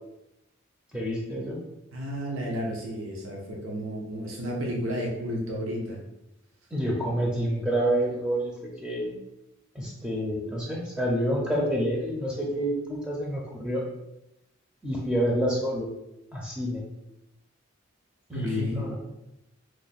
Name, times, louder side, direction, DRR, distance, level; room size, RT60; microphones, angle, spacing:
voice 1, 0.9-1.6 6.7-9.1 9.7-13.8 14.8-15.9 16.3-16.8 18.3-19.0, equal, 5° right, -3 dB, 0.5 m, -28 dB
voice 2, 1.9-6.0 18.3-18.9, equal, 80° right, -1 dB, 0.7 m, -32 dB
3.1 x 2.1 x 4.0 m, 0.88 s
head